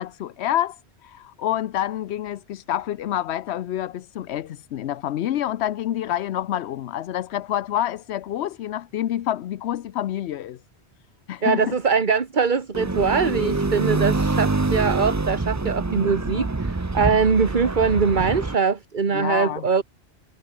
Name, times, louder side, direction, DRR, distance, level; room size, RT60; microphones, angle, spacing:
voice 1, 0.0-10.6 11.3-11.7 19.1-19.6, left 12 dB, 80° left, 0.9 m, -27 dB
voice 2, 11.4-19.8, right 5 dB, 45° right, 1.5 m, -22 dB
sound 1, 12.7-18.5, right 3 dB, 20° right, 0.7 m, -25 dB
omnidirectional pair, 1.1 m